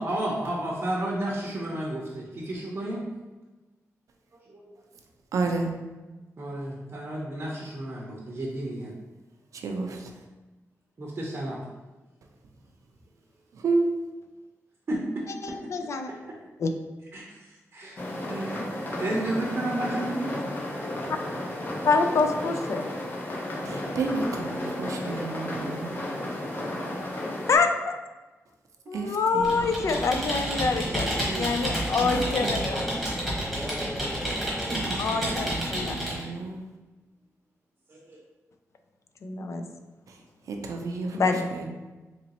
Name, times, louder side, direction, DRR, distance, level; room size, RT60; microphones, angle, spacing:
voice 1, 0.0-3.1 4.5-4.8 6.4-8.9 11.0-11.6 14.9-15.6 17.1-20.4 30.7-31.5 37.9-38.2, right 1 dB, 45° right, -4 dB, 0.7 m, -32 dB
voice 2, 5.3-5.7 9.5-10.1 13.5-13.9 23.6-26.1 28.9-29.7 32.0-32.6 34.7-36.6 40.1-41.7, right 3 dB, 85° right, 3 dB, 0.5 m, -31 dB
voice 3, 15.4-16.1 16.6-16.7 21.8-22.8 27.5-28.0 28.9-32.9 35.0-36.0 39.2-39.6 41.1-41.4, left 4 dB, 60° left, 6 dB, 0.4 m, -26 dB
sound 1, 18.0-27.6, left 1 dB, 40° left, 0.8 m, -33 dB
Computer keyboard, 29.4-36.2, equal, ahead, 1.3 m, -30 dB
3.9 x 3.0 x 2.9 m, 1.2 s
wide cardioid pair, 130°, 6 cm